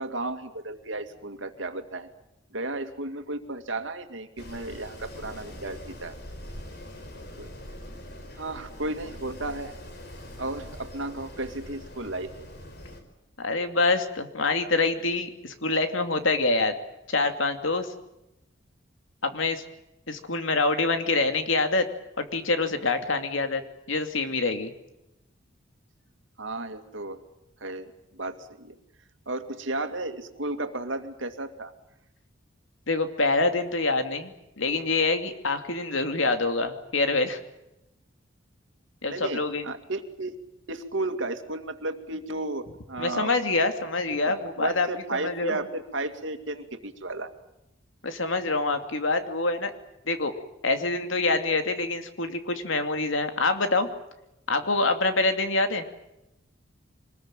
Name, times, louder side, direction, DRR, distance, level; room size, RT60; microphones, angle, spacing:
voice 1, 0.0-2.1 2.5-6.2 7.1-7.5 8.4-9.8 10.4-12.3 26.4-27.2 27.6-28.7 29.3-31.7 39.1-40.4 40.7-43.3 44.3-47.3, right 2 dB, 75° right, 8 dB, 2.3 m, -34 dB
Wind, 4.4-13.0, left 1 dB, 55° left, 4.5 m, -43 dB
voice 2, 13.4-16.7 17.1-17.9 19.2-19.6 20.1-21.9 22.2-23.6 23.9-24.7 32.9-37.4 39.0-39.6 43.0-45.6 48.0-49.7 50.1-50.3 50.6-53.9 54.5-55.8, left 3 dB, 80° left, 7 dB, 2.6 m, -26 dB
25.0 x 20.5 x 9.1 m, 0.90 s
head